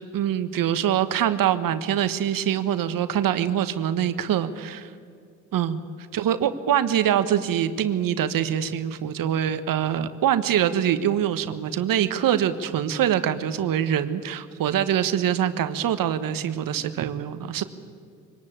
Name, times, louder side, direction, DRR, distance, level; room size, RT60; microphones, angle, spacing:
voice 1, 0.1-4.9 5.5-5.8 6.1-17.6, right 10 dB, 55° right, 11 dB, 1.5 m, -24 dB
24.5 x 19.0 x 8.8 m, 2.3 s
hypercardioid pair, 60°, 39 cm